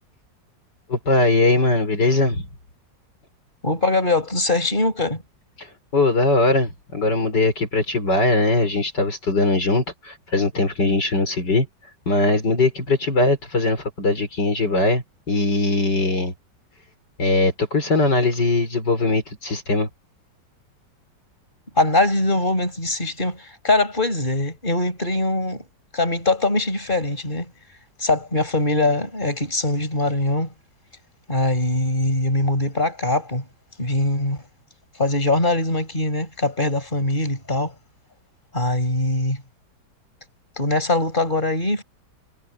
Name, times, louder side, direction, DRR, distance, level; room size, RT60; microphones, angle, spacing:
voice 1, 0.9-2.5 5.6-11.7 12.1-16.3 17.2-19.9, left 2 dB, 70° left, 5.8 m, -20 dB
voice 2, 3.6-5.2 21.8-25.6 25.9-27.5 28.0-30.5 31.3-33.5 33.8-34.4 35.0-37.7 38.5-39.4 40.6-41.8, left 2 dB, 25° left, 6.0 m, -22 dB
omnidirectional pair, 2.0 m